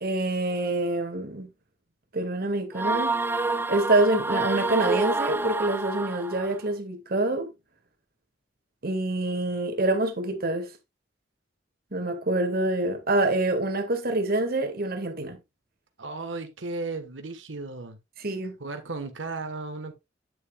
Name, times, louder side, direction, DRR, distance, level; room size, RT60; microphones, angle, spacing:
voice 1, 0.0-1.5 2.1-3.2 3.7-7.5 8.8-10.7 11.9-15.4 18.2-18.6, right 2 dB, 55° right, 1.9 m, -26 dB
sound 1, 2.7-6.6, right 3 dB, 10° right, 0.5 m, -28 dB
voice 2, 16.0-18.0 18.6-19.9, right 3 dB, 85° right, 1.3 m, -35 dB
9.4 x 8.5 x 2.3 m
head